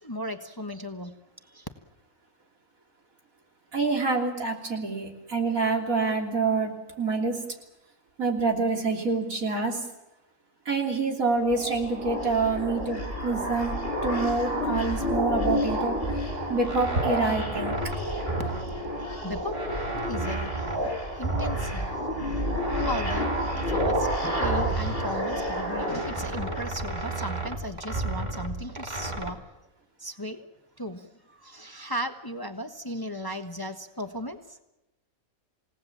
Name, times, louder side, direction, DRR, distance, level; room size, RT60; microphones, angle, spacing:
voice 1, 0.0-1.2 1.5-1.7 18.9-19.6 20.0-22.5 22.8-29.4 30.0-30.5 30.8-31.1 31.4-34.4, equal, 15° left, 6 dB, 1.2 m, -36 dB
voice 2, 3.7-6.7 7.0-7.4 8.2-9.9 10.7-13.7 14.0-16.0 16.5-17.8, right 3 dB, 75° right, 2 dB, 3.7 m, -26 dB
sound 1, 11.3-26.6, equal, 35° left, 6.9 m, -30 dB
sound 2, 16.0-19.2 19.5-22.1 22.6-25.5 25.8-29.3, right 2 dB, 30° right, 2.5 m, -33 dB
28.5 x 18.5 x 7.3 m, 0.95 s
omnidirectional pair, 1.5 m